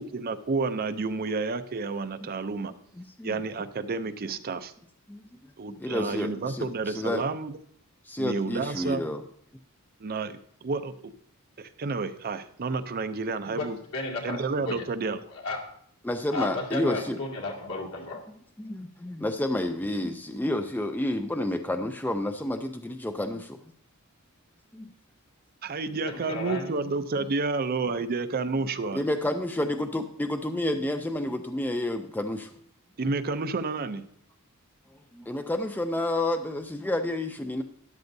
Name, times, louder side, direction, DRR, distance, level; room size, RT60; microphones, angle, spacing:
voice 1, 0.0-2.7 3.2-4.7 5.6-7.5 8.2-9.0 10.0-11.1 11.6-13.8 14.2-15.2 25.6-29.0 33.0-34.0, right 3 dB, 45° right, 0.5 m, -30 dB
voice 2, 3.0-3.3 5.1-5.2 5.7-7.2 8.0-9.2 16.0-17.2 18.6-23.7 24.7-24.9 28.9-32.5 35.1-37.6, left 1 dB, 10° left, 0.4 m, -30 dB
voice 3, 13.4-14.9 15.3-15.7 16.3-18.2 25.8-26.7, left 2 dB, 65° left, 2.3 m, -34 dB
13.0 x 10.5 x 2.7 m
head